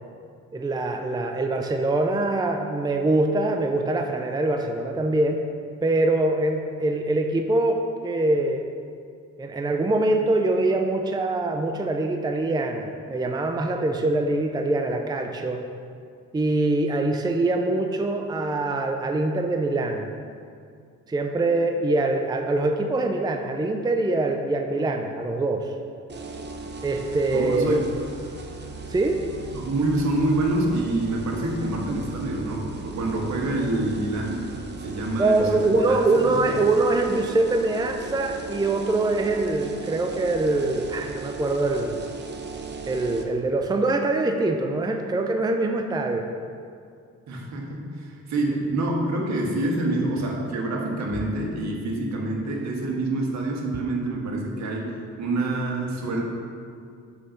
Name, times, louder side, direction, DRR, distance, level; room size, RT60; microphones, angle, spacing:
voice 1, 0.5-5.4 5.8-8.6 9.4-15.6 16.3-20.1 21.1-25.7 26.8-27.8 28.9-29.2 35.2-42.0 42.9-46.3, right 2 dB, 15° right, 4 dB, 0.5 m, -24 dB
sound 1, 26.1-43.2, right 4 dB, 35° right, 0.9 m, -37 dB
voice 2, 27.3-27.9 29.5-34.5 34.8-36.5 47.3-54.9 55.2-56.2, right 2 dB, 65° right, 0 dB, 1.5 m, -27 dB
5.6 x 5.6 x 6.5 m, 2.3 s
cardioid pair, 90°, 30 cm